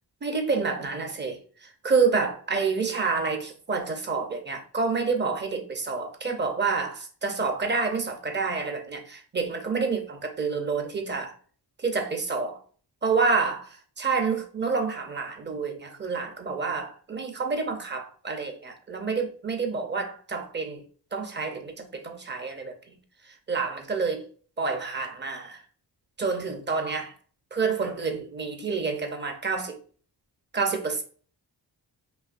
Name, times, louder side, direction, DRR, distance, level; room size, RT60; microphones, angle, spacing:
voice 1, 0.2-11.3 11.8-12.6 13.0-20.8 21.1-22.9 23.2-24.3 24.6-25.6 26.2-27.1 27.5-29.8 30.5-31.0, right 4 dB, 25° right, 0.7 m, -28 dB
5.6 x 2.7 x 2.5 m
wide cardioid pair, 150°, 42 cm